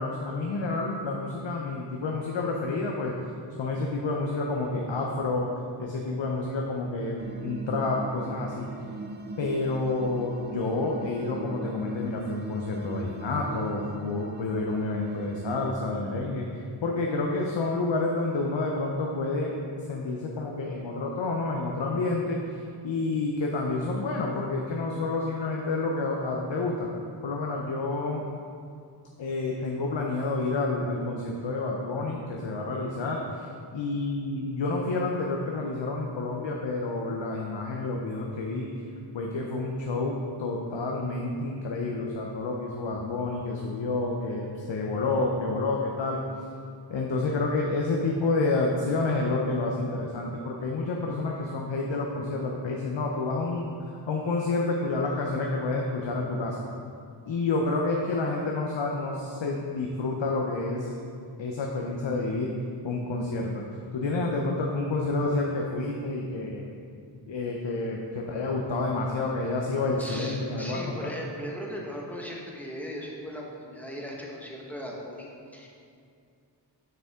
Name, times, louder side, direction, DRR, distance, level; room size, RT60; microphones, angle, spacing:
voice 1, 0.0-3.1 3.6-5.5 5.8-8.7 9.4-19.5 19.9-22.4 22.8-26.9 27.2-28.2 29.2-33.4 33.7-38.7 39.1-46.2 46.9-53.7 54.1-56.6 57.3-60.9 61.4-62.5 62.8-63.6 63.9-66.7 67.3-71.1, left 3 dB, 90° left, -1 dB, 0.7 m, -29 dB
sound 1, 7.2-15.7, right 3 dB, 25° right, 0.4 m, -39 dB
voice 2, 70.0-75.7, equal, 5° left, -3 dB, 1.2 m, -38 dB
6.8 x 6.4 x 3.6 m, 2.4 s
wide cardioid pair, 65°, 43 cm